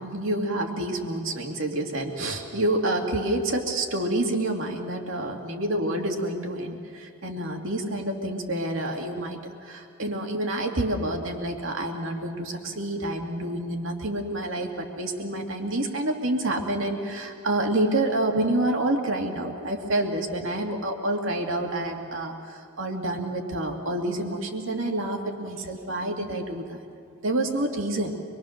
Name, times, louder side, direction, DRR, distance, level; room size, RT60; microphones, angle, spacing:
voice 1, 0.0-26.8 27.2-28.1, right 1 dB, 75° right, 2 dB, 2.3 m, -28 dB
25.5 x 22.0 x 6.6 m, 2.3 s
head